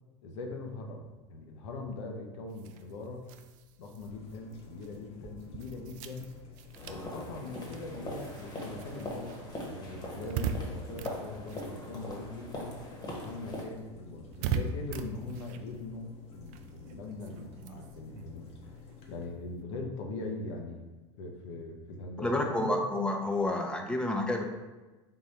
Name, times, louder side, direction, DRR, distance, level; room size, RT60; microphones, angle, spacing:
voice 1, 0.2-3.2 3.8-6.3 6.8-12.8 13.2-18.5 19.1-20.9 21.2-22.8, left 3 dB, 70° left, 2 dB, 0.7 m, -41 dB
sound 1, 2.5-12.4 12.7-19.6, right 6 dB, 55° right, 0.4 m, -41 dB
sound 2, 4.0-19.2, left 4 dB, 40° left, 0.8 m, -52 dB
sound 3, 6.7-13.6, left 1 dB, 25° left, 1.1 m, -41 dB
voice 2, 22.2-24.4, left 1 dB, 5° left, 2 dB, 0.6 m, -29 dB
3.7 x 2.5 x 4.2 m, 1.2 s
hypercardioid pair, 90°, 16 cm